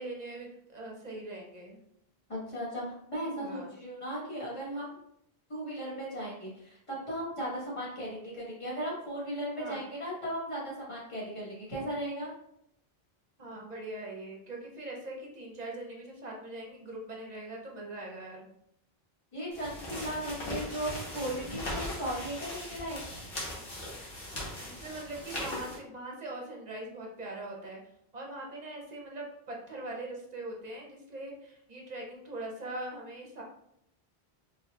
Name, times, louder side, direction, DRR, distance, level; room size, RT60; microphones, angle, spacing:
voice 1, 0.0-1.8 3.3-3.7 9.5-9.8 13.4-18.5 24.6-27.8 28.1-33.4, right 2 dB, 45° right, -1 dB, 0.8 m, -41 dB
voice 2, 2.3-5.0 5.5-12.3 19.3-23.0, equal, 30° left, -7 dB, 1.5 m, -36 dB
sound 1, 19.5-25.8, left 1 dB, 60° left, 1.3 m, -39 dB
4.1 x 3.2 x 2.3 m, 0.75 s
omnidirectional pair, 1.1 m